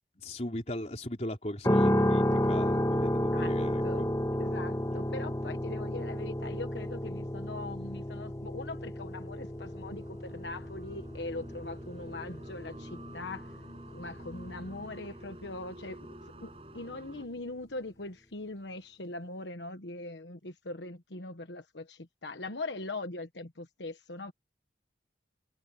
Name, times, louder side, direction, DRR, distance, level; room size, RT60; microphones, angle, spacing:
voice 1, 0.2-4.1 4.9-5.0, left 1 dB, 40° left, 4.0 m, -38 dB
sound 1, 1.6-15.7, equal, 20° left, 1.9 m, -32 dB
voice 2, 4.4-13.5 13.9-16.1 16.4-24.3, left 2 dB, 90° left, 1.3 m, -41 dB
sound 2, 8.6-17.3, right 1 dB, 35° right, 7.9 m, -49 dB
head